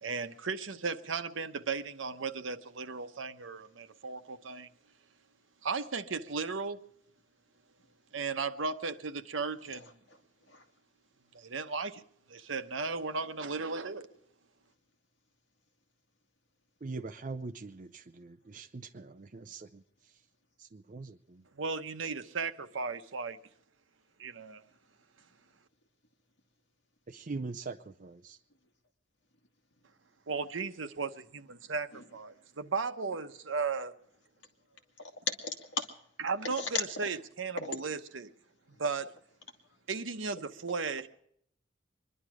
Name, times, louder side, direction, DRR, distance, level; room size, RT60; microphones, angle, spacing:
voice 1, 0.0-4.7 5.6-6.8 8.1-9.9 11.3-12.0 12.3-14.1 21.5-23.4 24.2-24.6 30.3-33.9 36.2-38.3 38.8-39.1 39.9-41.1, right 4 dB, 90° right, 0.9 m, -36 dB
voice 2, 9.7-10.2 10.5-10.6 14.1-14.2 31.9-32.2 35.0-35.9 36.4-37.1 37.6-37.8, left 4 dB, 65° left, 2.1 m, -37 dB
voice 3, 16.8-20.2 20.6-21.4 27.1-28.4, right 3 dB, 45° right, 0.5 m, -42 dB
24.5 x 11.0 x 4.8 m
head